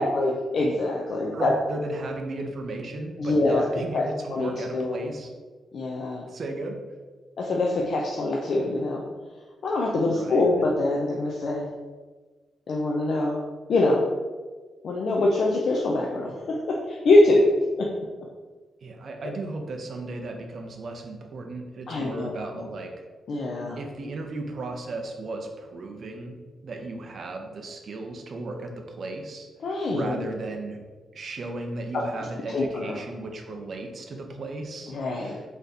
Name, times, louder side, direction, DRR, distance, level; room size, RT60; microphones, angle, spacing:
voice 1, 0.0-1.5 3.2-3.6 3.9-4.0 4.3-5.0 5.7-6.2 7.4-9.0 9.6-11.7 12.7-13.4 13.7-14.0 14.8-17.4 21.9-22.7 23.3-23.8 29.6-30.3 32.5-32.9 34.9-35.4, left 2 dB, 50° left, -2 dB, 0.4 m, -24 dB
voice 2, 1.3-5.3 6.3-6.8 10.1-10.5 18.8-23.0 23.8-26.4 26.6-29.5 29.9-30.8 31.1-34.9 35.2-35.4, right 2 dB, 40° right, 3 dB, 0.4 m, -35 dB
4.0 x 3.4 x 2.7 m, 1.4 s
wide cardioid pair, 180°, 0 cm